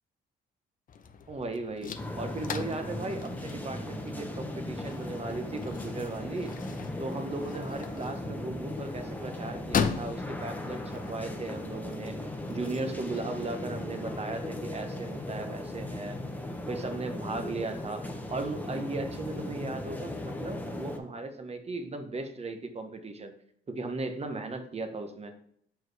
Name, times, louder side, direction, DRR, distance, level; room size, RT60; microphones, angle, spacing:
sound 1, 0.9-13.2, left 6 dB, 45° left, 0.6 m, -39 dB
voice 1, 1.3-6.5 7.0-16.2 16.7-23.3 23.7-25.3, right 3 dB, 30° right, 7 dB, 0.9 m, -37 dB
sound 2, 2.0-21.0, left 1 dB, 10° left, 0.8 m, -38 dB
6.1 x 4.6 x 3.3 m, 0.67 s
cardioid pair, 90°, 20 cm